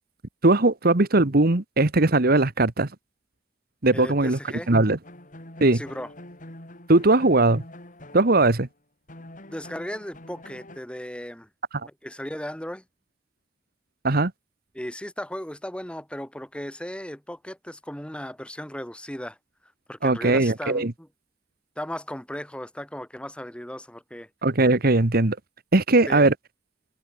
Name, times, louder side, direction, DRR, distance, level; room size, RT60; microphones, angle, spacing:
voice 1, 0.4-2.9 3.8-4.4 4.7-5.0 5.6-5.8 6.9-7.6 8.1-8.7 11.7-11.9 14.0-14.3 20.0-20.9 24.4-25.4 25.7-26.3, right 2 dB, 55° right, 1.5 m, -19 dB
voice 2, 3.9-4.7 5.7-6.1 9.2-11.5 11.8-12.8 14.7-19.4 19.9-21.1 21.8-24.3 26.1-26.3, equal, 5° left, 3.7 m, -36 dB
sound 1, 5.0-8.7 9.1-10.8, left 1 dB, 45° left, 6.9 m, -45 dB
head